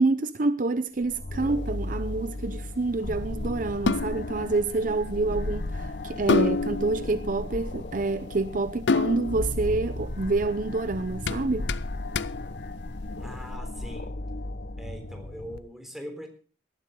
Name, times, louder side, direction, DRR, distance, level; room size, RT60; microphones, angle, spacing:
voice 1, 0.0-11.7, right 3 dB, 50° right, 0.7 m, -27 dB
sound 1, 1.0-15.6, left 1 dB, 60° left, 1.1 m, -35 dB
sound 2, 1.3-13.5, left 4 dB, 80° left, 0.6 m, -32 dB
voice 2, 13.2-14.2 14.8-16.3, equal, ahead, 3.7 m, -41 dB
18.0 x 13.5 x 3.8 m
head